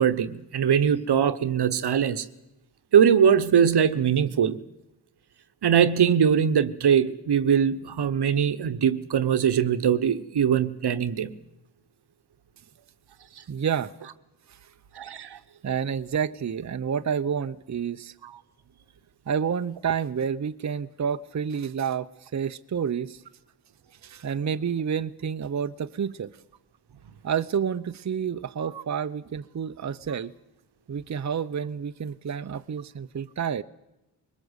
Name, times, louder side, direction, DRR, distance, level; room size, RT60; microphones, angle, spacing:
voice 1, 0.0-2.2 2.9-4.6 5.6-11.3 15.0-15.4 18.2-18.3, right 8 dB, 70° right, 1.2 m, -22 dB
voice 2, 13.5-13.9 14.5-14.6 15.6-18.1 19.3-23.2 24.0-26.3 27.2-30.3 30.9-33.6, right 7 dB, 45° right, 0.8 m, -29 dB
22.0 x 20.5 x 8.1 m
cardioid pair, 70°, 41 cm